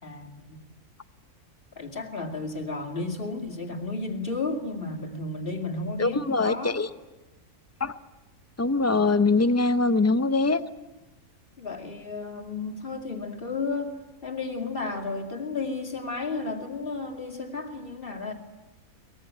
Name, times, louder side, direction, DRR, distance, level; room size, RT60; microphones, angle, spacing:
voice 1, 0.0-0.7 1.8-6.8 11.6-14.0 14.2-18.3, left 3 dB, 35° left, 3 dB, 2.8 m, -33 dB
voice 2, 6.0-6.9 7.8-7.9 8.6-10.6, left 3 dB, 20° left, 12 dB, 0.4 m, -23 dB
24.0 x 20.5 x 9.4 m, 1.1 s
omnidirectional pair, 1.6 m